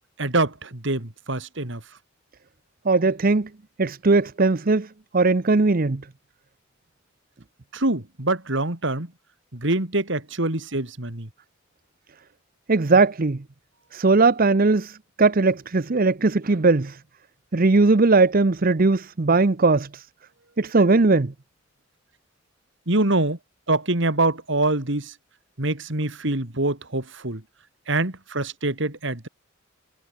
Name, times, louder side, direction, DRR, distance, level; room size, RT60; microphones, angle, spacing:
voice 1, 0.2-1.8 7.7-9.1 9.5-11.3 22.9-23.4 23.7-25.1 25.6-27.4 27.9-29.3, right 2 dB, 65° right, 3.1 m, -25 dB
voice 2, 2.8-3.5 3.8-4.9 5.1-6.0 12.7-13.4 13.9-17.0 17.5-20.1 20.6-21.3, right 3 dB, 45° right, 0.8 m, -19 dB
head